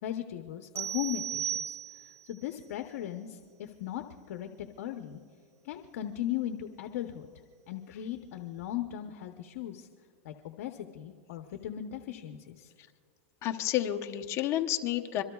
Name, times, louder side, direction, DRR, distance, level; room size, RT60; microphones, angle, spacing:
voice 1, 0.0-5.2 5.6-7.3 7.7-9.9 10.2-12.7, left 11 dB, 70° left, 5 dB, 0.8 m, -38 dB
sound 1, 0.8-2.3, right 10 dB, 30° right, 0.7 m, -35 dB
voice 2, 13.4-15.2, left 13 dB, 35° left, 6 dB, 0.9 m, -30 dB
26.0 x 23.0 x 2.3 m, 2.1 s
supercardioid pair, 140°, 8 cm